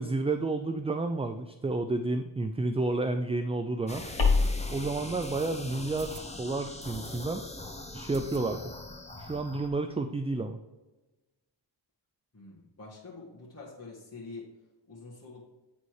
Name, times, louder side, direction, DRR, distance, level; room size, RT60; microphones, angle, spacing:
voice 1, 0.0-4.0 4.7-7.4 7.9-8.6 9.2-10.6, right 2 dB, 15° right, 8 dB, 0.4 m, -31 dB
sound 1, 2.9-3.0 3.4-3.5 4.3-4.5 5.2-5.5 5.9-6.3 6.8-7.3 7.6-7.7 8.1-8.8 9.1-9.2 9.5-9.6 9.8-10.4, right 6 dB, 50° right, 0.8 m, -49 dB
sound 2, 3.9-9.7, left 2 dB, 15° left, 1.0 m, -42 dB
sound 3, 4.2-9.0, left 4 dB, 75° left, 1.8 m, -33 dB
voice 2, 12.3-14.5 14.9-15.4, left 3 dB, 30° left, -6 dB, 1.9 m, -46 dB
9.3 x 4.2 x 4.8 m, 1.1 s
cardioid pair, 65°, 46 cm